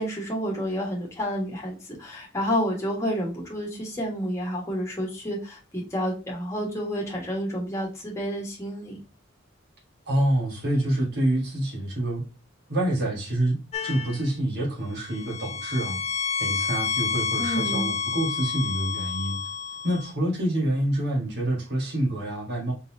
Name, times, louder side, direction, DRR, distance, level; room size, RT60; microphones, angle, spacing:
voice 1, 0.0-9.0 17.4-17.9, equal, 15° left, 1.4 m, -30 dB
voice 2, 10.1-12.2 12.7-16.0 16.4-19.4 19.8-22.7, right 1 dB, 55° right, 1.4 m, -27 dB
sound 1, 13.7-14.3 15.0-20.1, left 6 dB, 30° left, 0.4 m, -30 dB
4.0 x 3.7 x 2.7 m
head